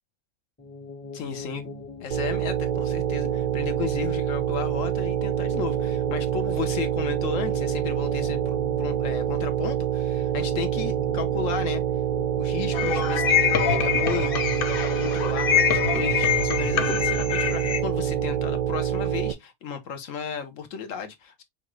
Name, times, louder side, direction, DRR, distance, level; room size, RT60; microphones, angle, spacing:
sound 1, 0.6-19.4, left 4 dB, 10° left, 0.6 m, -41 dB
voice 1, 1.1-1.7 2.0-11.8 12.4-21.4, left 7 dB, 85° left, 1.3 m, -34 dB
sound 2, 2.1-19.3, right 10 dB, 70° right, 0.4 m, -26 dB
sound 3, 12.7-17.8, left 8 dB, 55° left, 0.8 m, -24 dB
5.7 x 2.5 x 3.0 m
omnidirectional pair, 1.3 m